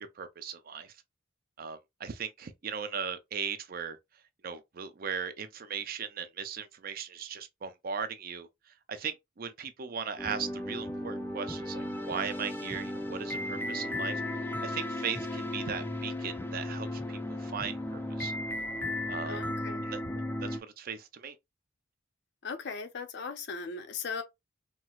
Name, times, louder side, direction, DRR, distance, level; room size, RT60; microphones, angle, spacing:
voice 1, 0.2-0.9 1.6-4.0 4.4-14.2 14.6-18.3 19.1-19.4 19.8-20.0 20.4-21.4, right 6 dB, 50° right, 0.5 m, -38 dB
sound 1, 10.2-20.6, left 1 dB, 10° left, 0.4 m, -35 dB
voice 2, 19.2-19.8 22.4-24.2, left 5 dB, 60° left, 0.6 m, -38 dB
4.3 x 2.0 x 2.3 m
head